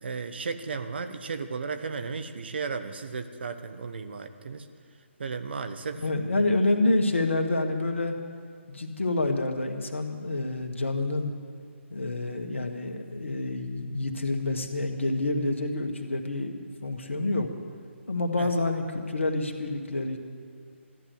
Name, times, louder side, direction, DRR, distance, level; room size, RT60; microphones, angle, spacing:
voice 1, 0.0-4.7 5.2-6.0 6.3-6.5 18.4-18.5, right 5 dB, 55° right, 8 dB, 1.0 m, -34 dB
voice 2, 6.0-8.2 8.7-11.3 11.9-17.5 18.1-20.2, left 2 dB, 70° left, 4 dB, 1.8 m, -28 dB
14.5 x 10.5 x 8.1 m, 2.2 s
figure-of-eight pair, 140°, 7 cm